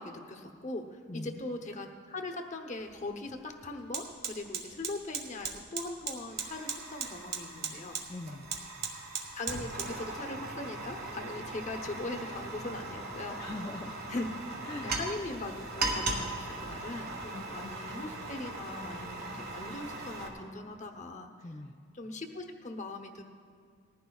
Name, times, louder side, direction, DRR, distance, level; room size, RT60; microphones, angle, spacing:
voice 1, 0.0-8.0 9.3-13.4 14.1-14.3 14.8-21.3 21.9-23.2, left 2 dB, 35° left, 5 dB, 0.8 m, -40 dB
voice 2, 1.1-1.4 8.1-8.5 13.4-14.0 14.6-15.0 17.3-17.7 21.4-21.8, left 2 dB, 15° left, 2 dB, 0.3 m, -41 dB
Fire, 2.8-2.9 3.3-20.3, right 3 dB, 45° right, 1.4 m, -38 dB
19.5 x 15.0 x 2.3 m, 2.1 s
head